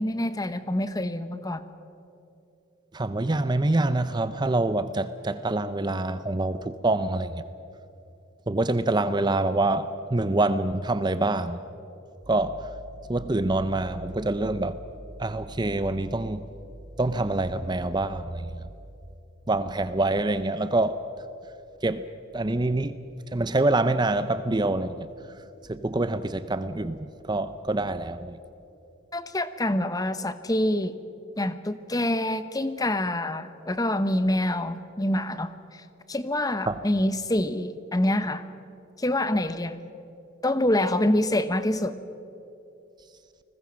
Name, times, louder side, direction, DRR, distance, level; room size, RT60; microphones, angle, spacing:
voice 1, 0.0-1.7 29.1-30.9 31.4-38.5 39.0-39.9 40.4-42.0, left 1 dB, 20° left, 12 dB, 0.9 m, -26 dB
voice 2, 2.9-7.4 8.5-11.6 12.3-12.6 13.1-14.8 15.2-16.5 17.0-18.4 19.5-21.0 21.8-22.0 22.3-23.0 23.3-25.1 25.7-28.4 36.7-36.8, right 2 dB, 20° right, 12 dB, 0.6 m, -26 dB
30.0 x 20.5 x 6.3 m, 2.8 s
head